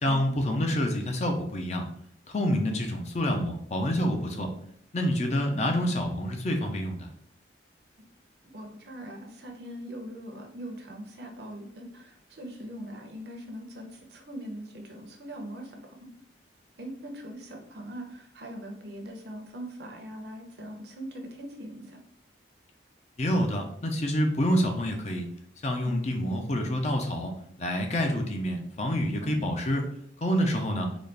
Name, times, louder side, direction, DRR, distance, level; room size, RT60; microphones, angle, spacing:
voice 1, 0.0-1.9 2.3-4.5 4.9-7.1 23.2-25.3 25.6-27.3 27.6-29.8 30.2-30.9, equal, 35° left, 3 dB, 0.5 m, -27 dB
voice 2, 8.4-16.1 16.8-22.0 25.8-26.1 29.2-29.4, equal, 60° right, 3 dB, 0.7 m, -41 dB
4.0 x 2.4 x 3.3 m, 0.68 s
head